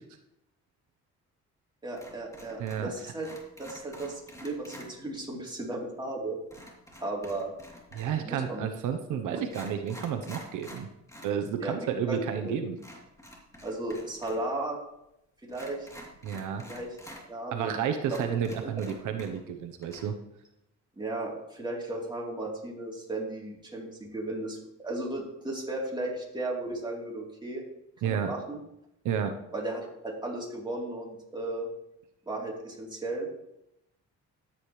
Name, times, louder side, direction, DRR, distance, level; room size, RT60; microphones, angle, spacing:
voice 1, 1.8-3.3 3.6-6.4 7.0-7.5 8.2-8.7 9.3-9.4 11.6-11.8 12.1-12.5 13.6-14.8 15.4-15.9 16.6-17.0 17.3-17.8 18.1-18.2 18.6-18.7 21.0-27.6 28.0-28.6 29.5-31.7 32.3-33.3, right 2 dB, 15° right, -3 dB, 3.5 m, -35 dB
sound 1, 2.0-2.9 3.2-4.9 6.5-8.3 9.0-9.1 9.4-11.4 11.7-11.8 12.8-14.5 14.7-14.8 15.5-17.2 17.7-17.8 18.1-19.5 19.8-20.0, equal, 10° left, 3.1 m, -48 dB
voice 2, 2.6-2.9 7.9-10.9 11.2-12.8 16.2-16.7 17.5-20.2 28.0-28.4 29.0-29.4, right 8 dB, 85° right, 6 dB, 0.9 m, -31 dB
13.0 x 8.8 x 3.2 m, 0.83 s
cardioid pair, 90°, 30 cm